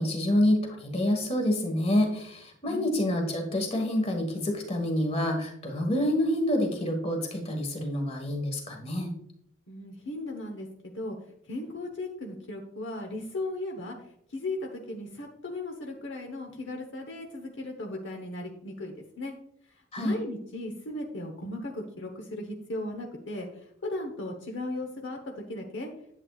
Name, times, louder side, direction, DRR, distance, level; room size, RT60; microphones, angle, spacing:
voice 1, 0.0-9.1 19.9-20.2, left 1 dB, 30° left, 3 dB, 1.6 m, -27 dB
voice 2, 9.7-10.7 10.9-11.2 11.5-14.0 14.3-19.3 20.0-23.5 23.8-25.2 25.5-25.9, left 2 dB, 60° left, 2 dB, 1.1 m, -36 dB
11.0 x 8.0 x 2.4 m, 0.70 s
head